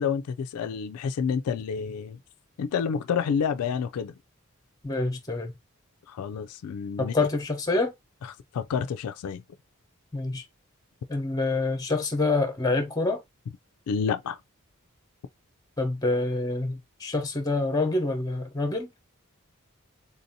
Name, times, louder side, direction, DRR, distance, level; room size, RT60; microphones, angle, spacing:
voice 1, 0.0-2.2 2.6-4.1 6.1-7.3 8.2-9.4 13.9-14.4, left 6 dB, 90° left, 0.3 m, -29 dB
voice 2, 4.8-5.5 7.0-7.9 10.1-10.4 11.1-13.2 15.8-18.9, left 3 dB, 15° left, 0.8 m, -26 dB
3.9 x 2.6 x 2.7 m
head